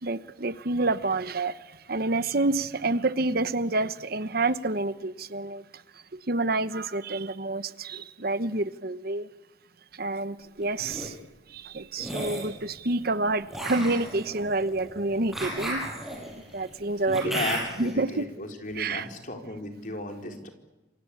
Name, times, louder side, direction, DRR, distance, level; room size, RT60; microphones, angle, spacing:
voice 1, 0.0-1.6 1.9-5.6 6.3-9.3 9.9-11.2 11.5-15.9 16.5-17.4 17.8-18.2 18.8-19.1, right 2 dB, 55° right, 1.0 m, -28 dB
sound 1, 10.6-11.1 12.0-12.5 13.5-17.9, right 1 dB, ahead, 7.8 m, -34 dB
voice 2, 17.1-20.5, left 2 dB, 45° left, 4.3 m, -35 dB
28.5 x 24.0 x 8.5 m
head